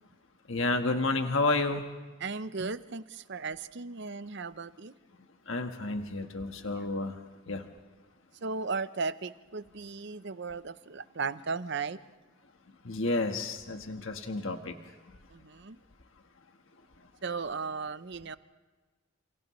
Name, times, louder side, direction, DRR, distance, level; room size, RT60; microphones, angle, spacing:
voice 1, 0.5-1.8 5.5-7.2 7.5-7.6 12.8-14.8, left 2 dB, 65° left, 5 dB, 1.4 m, -30 dB
voice 2, 2.2-4.9 6.7-6.9 8.4-12.0 15.3-15.8 17.2-18.4, right 4 dB, 55° right, 13 dB, 0.7 m, -36 dB
29.5 x 28.5 x 3.2 m, 1.3 s
head